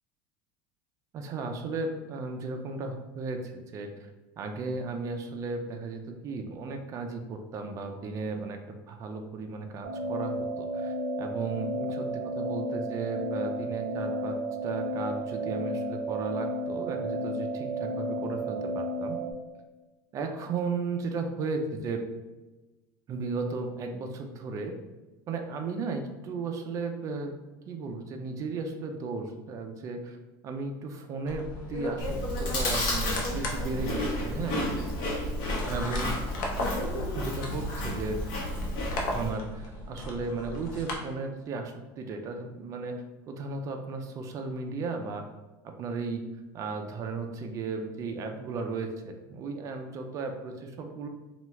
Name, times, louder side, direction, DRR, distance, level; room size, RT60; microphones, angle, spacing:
voice 1, 1.1-4.1 4.4-12.1 12.4-14.4 14.6-19.2 20.1-22.0 23.1-24.7 25.3-27.4 27.7-30.2 30.4-34.6 35.7-36.2 37.1-38.2 39.1-45.2 45.6-46.2 46.5-51.1, right 4 dB, 30° right, 5 dB, 0.4 m, -35 dB
sound 1, 9.8-19.3, right 1 dB, 90° right, 0.5 m, -32 dB
sound 2, 31.3-41.0, left 2 dB, 80° left, 0.7 m, -36 dB
Chewing mastication, 32.0-39.3, left 1 dB, 50° left, 0.9 m, -32 dB
2.9 x 2.3 x 3.1 m, 1.1 s
supercardioid pair, 150°, 10 cm